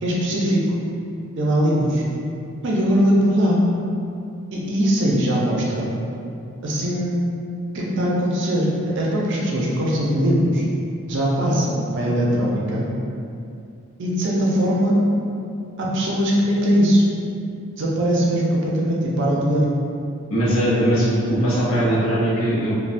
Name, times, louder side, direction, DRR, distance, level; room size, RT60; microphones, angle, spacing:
voice 1, 0.0-0.6 1.4-2.0 2.6-3.6 4.5-5.9 6.6-7.2 7.7-10.7 11.1-12.9 14.0-15.0 15.8-17.1 17.8-19.7, equal, 55° right, -4 dB, 0.5 m, -20 dB
voice 2, 20.3-22.7, right 1 dB, 80° left, -7 dB, 0.7 m, -20 dB
3.2 x 2.1 x 2.5 m, 2.6 s
head